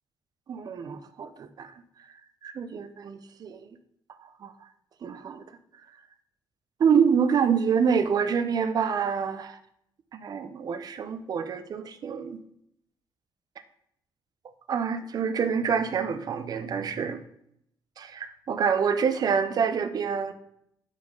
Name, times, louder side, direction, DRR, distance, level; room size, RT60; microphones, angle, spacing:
voice 1, 0.5-1.7 2.4-3.6 4.2-4.5 5.0-5.4 6.8-9.6 10.1-12.4 14.7-17.2 18.0-20.3, right 6 dB, 50° right, 10 dB, 0.6 m, -27 dB
4.8 x 4.3 x 5.2 m, 0.74 s
cardioid pair, 125°, 9 cm